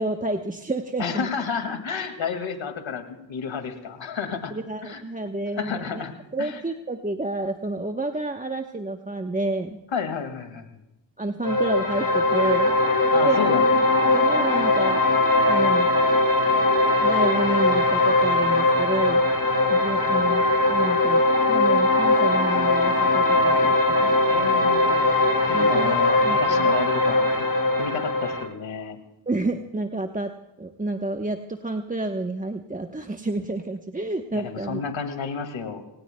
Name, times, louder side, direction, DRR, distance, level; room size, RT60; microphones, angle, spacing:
voice 1, 0.0-1.3 4.5-6.0 6.3-9.8 11.2-12.8 13.1-13.6 14.1-15.0 15.5-15.9 17.0-19.3 19.7-21.2 21.5-24.4 25.5-26.7 29.3-30.3 30.6-34.8, right 2 dB, 20° right, 5 dB, 1.1 m, -29 dB
voice 2, 1.0-4.5 4.8-5.0 5.5-6.1 6.4-6.6 9.9-10.7 13.1-13.8 24.3-24.9 25.5-27.2 27.8-29.0 34.3-35.8, left 6 dB, 90° left, 6 dB, 2.3 m, -31 dB
sound 1, 11.4-28.4, left 2 dB, 50° left, 6.1 m, -20 dB
29.0 x 19.0 x 2.3 m, 0.97 s
cardioid pair, 50°, 45 cm